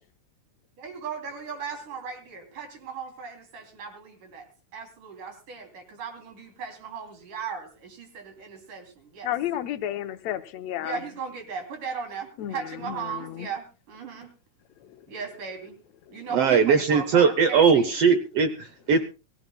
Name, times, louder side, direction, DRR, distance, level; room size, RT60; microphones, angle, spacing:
voice 1, 0.8-4.4 4.7-9.3 10.8-14.3 15.1-15.7 16.1-18.0, right 6 dB, 85° right, 5 dB, 4.7 m, -37 dB
voice 2, 9.2-11.0 12.4-12.6 12.8-13.5, left 12 dB, 70° left, 9 dB, 1.9 m, -31 dB
voice 3, 16.3-19.0, right 6 dB, 70° right, 9 dB, 1.5 m, -20 dB
24.0 x 15.5 x 2.3 m, 0.32 s
omnidirectional pair, 3.5 m